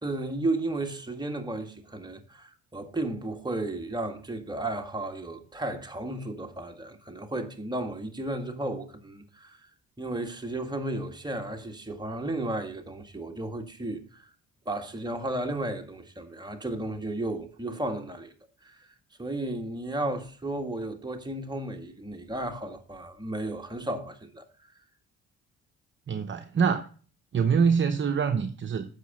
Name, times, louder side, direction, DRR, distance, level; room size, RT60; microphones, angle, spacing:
voice 1, 0.0-9.6 10.0-14.3 14.6-18.3 18.6-18.8 19.2-24.4, right 2 dB, 15° right, 1.7 m, -33 dB
voice 2, 26.1-26.8 27.3-28.9, right 6 dB, 40° right, 0.8 m, -24 dB
8.1 x 6.4 x 6.1 m
cardioid pair, 90°, 30 cm